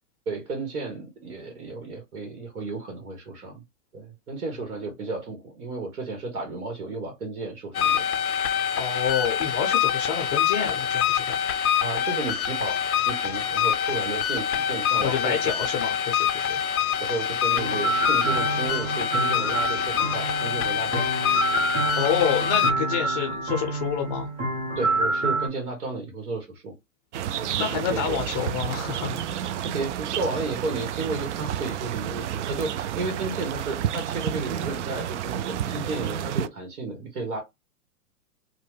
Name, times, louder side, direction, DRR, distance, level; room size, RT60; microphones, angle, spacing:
voice 1, 0.2-3.6 3.9-8.0 11.8-15.5 17.0-21.1 24.7-26.7 27.3-28.2 29.6-37.4, right 3 dB, 70° right, 1.5 m, -33 dB
sound 1, 7.7-22.7, left 9 dB, 85° left, 0.6 m, -25 dB
voice 2, 8.8-11.4 15.0-16.6 22.0-24.3 27.6-29.2, left 8 dB, 30° left, 0.5 m, -28 dB
sound 2, 17.6-25.5, right 3 dB, 15° right, 0.7 m, -27 dB
sound 3, 27.1-36.5, right 10 dB, 55° right, 0.5 m, -30 dB
2.9 x 2.1 x 3.2 m
hypercardioid pair, 120°, 43 cm